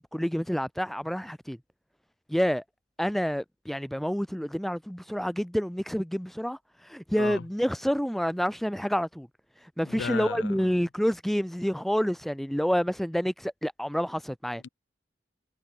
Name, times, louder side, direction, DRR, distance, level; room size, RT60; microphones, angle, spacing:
voice 1, 0.1-1.6 2.3-2.6 3.0-6.6 6.9-9.3 9.8-14.6, equal, ahead, 0.4 m, -28 dB
voice 2, 9.8-10.7 14.6-14.7, left 6 dB, 70° left, 0.5 m, -36 dB
head